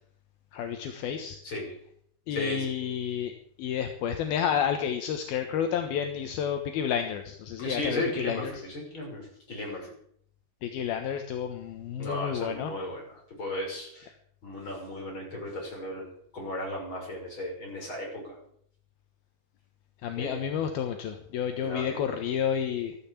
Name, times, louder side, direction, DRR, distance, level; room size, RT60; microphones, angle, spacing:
voice 1, 0.5-1.4 2.3-3.3 3.6-8.6 10.6-12.7 20.0-23.0, left 8 dB, 75° left, 6 dB, 3.0 m, -30 dB
voice 2, 2.3-2.7 7.6-9.9 12.0-14.1 14.4-16.1 16.3-18.4 20.2-20.5 21.6-22.1, left 1 dB, 30° left, 0 dB, 7.0 m, -35 dB
15.0 x 12.5 x 7.4 m, 0.65 s
omnidirectional pair, 4.6 m